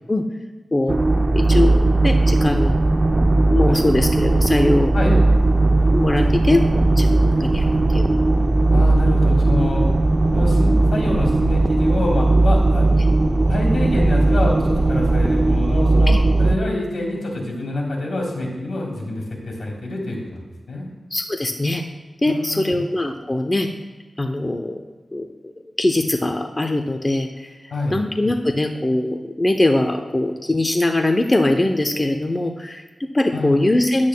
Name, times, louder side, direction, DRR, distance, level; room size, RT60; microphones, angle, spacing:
voice 1, 0.7-1.0 1.3-2.8 3.5-5.2 5.9-6.6 6.9-8.1 8.4-8.6 13.0-13.1 16.1-16.2 21.1-21.8 22.2-23.7 24.2-24.8 25.1-25.5 25.8-34.1, left 1 dB, 25° left, 5 dB, 0.5 m, -21 dB
sound 1, 0.9-16.6, right 2 dB, 40° right, 0.4 m, -17 dB
voice 2, 8.7-9.8 10.3-12.9 13.5-20.4 20.7-20.8 22.3-22.8 27.7-28.0 33.3-33.5, left 2 dB, 80° left, -1 dB, 2.3 m, -26 dB
10.0 x 8.5 x 2.2 m, 1.3 s
wide cardioid pair, 70°, 0 cm